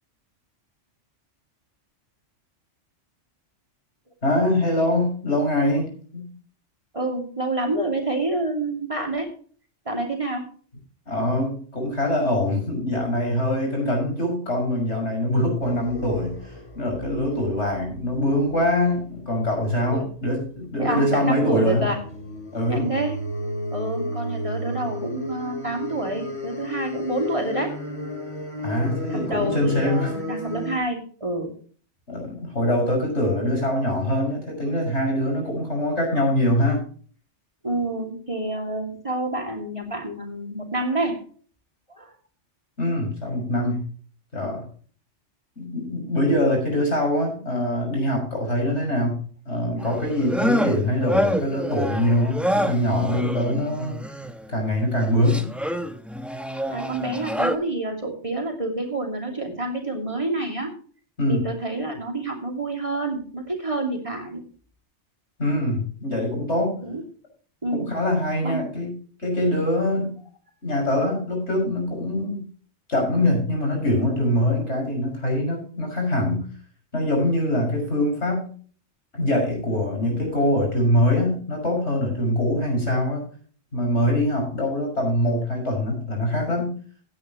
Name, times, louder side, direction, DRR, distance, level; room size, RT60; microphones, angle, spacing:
voice 1, 4.2-6.2 11.1-21.9 22.5-22.9 28.6-30.1 32.1-36.8 42.8-43.8 44.3-44.6 45.6-54.0 54.5-55.5 61.2-61.4 65.4-66.8 67.7-68.9 69.2-70.2 70.6-72.5 72.9-76.4 76.9-78.5 79.1-83.2 83.7-86.7, left 1 dB, 65° left, 1 dB, 6.6 m, -23 dB
voice 2, 6.9-9.3 9.9-10.4 19.9-20.1 20.8-22.0 22.7-23.2 23.7-27.7 29.1-31.5 37.6-41.2 41.9-42.1 56.7-60.7 61.3-64.4 66.8-67.0 67.6-67.9 68.4-68.7, right 2 dB, 25° right, 1 dB, 2.6 m, -28 dB
sound 1, 15.6-18.6 21.7-30.8, left 1 dB, 25° left, 2.3 m, -33 dB
sound 2, 49.8-54.5 54.9-57.6, equal, ahead, 0.8 m, -27 dB
17.0 x 9.7 x 3.0 m, 0.43 s
omnidirectional pair, 1.2 m